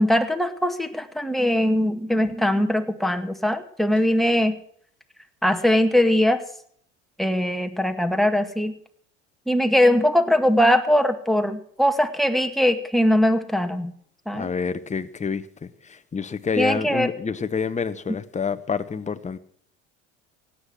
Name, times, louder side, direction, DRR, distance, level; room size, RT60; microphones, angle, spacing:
voice 1, 0.0-4.6 5.4-6.4 7.2-8.7 9.5-13.9 14.3-14.5 16.6-17.1, left 1 dB, ahead, 1.9 m, -21 dB
voice 2, 14.3-15.4 16.1-19.4, left 5 dB, 20° left, 1.1 m, -27 dB
16.5 x 10.0 x 6.3 m
hypercardioid pair, 75°, 38 cm